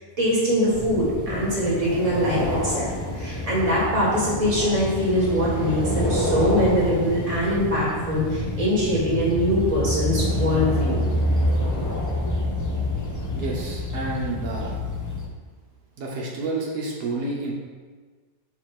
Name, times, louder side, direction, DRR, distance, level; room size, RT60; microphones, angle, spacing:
voice 1, 0.2-11.0, equal, 20° right, -7 dB, 1.8 m, -23 dB
sound 1, 0.7-15.3, left 1 dB, 30° left, 0.3 m, -27 dB
voice 2, 13.3-14.8 16.0-17.5, right 2 dB, 80° right, -2 dB, 1.5 m, -29 dB
4.9 x 4.0 x 5.9 m, 1.4 s
omnidirectional pair, 1.7 m